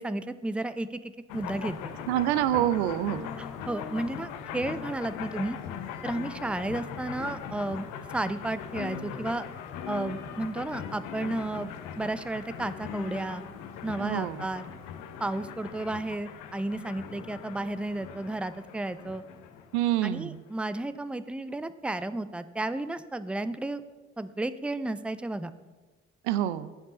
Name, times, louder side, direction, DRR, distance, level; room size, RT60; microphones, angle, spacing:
voice 1, 0.0-1.9 3.4-5.6 6.0-9.5 9.9-13.4 13.8-14.6 15.2-19.2 20.0-23.8 24.2-25.5, right 2 dB, 5° right, 13 dB, 0.5 m, -33 dB
sound 1, 1.3-20.5, left 7 dB, 65° left, 0.8 m, -40 dB
voice 2, 2.1-3.3 14.0-14.4 19.7-20.4 26.2-26.7, right 13 dB, 80° right, 14 dB, 0.5 m, -27 dB
15.0 x 5.2 x 4.2 m, 1.3 s
figure-of-eight pair, 40°, 33 cm